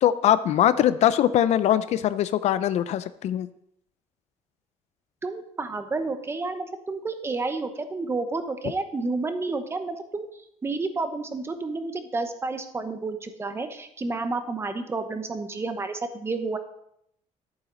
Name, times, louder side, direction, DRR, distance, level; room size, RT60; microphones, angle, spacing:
voice 1, 0.0-3.5, left 11 dB, 65° left, 14 dB, 0.5 m, -22 dB
voice 2, 5.2-10.3 10.6-16.6, right 3 dB, 20° right, 8 dB, 1.0 m, -30 dB
11.0 x 9.1 x 3.9 m, 0.73 s
cardioid pair, 155°, 12 cm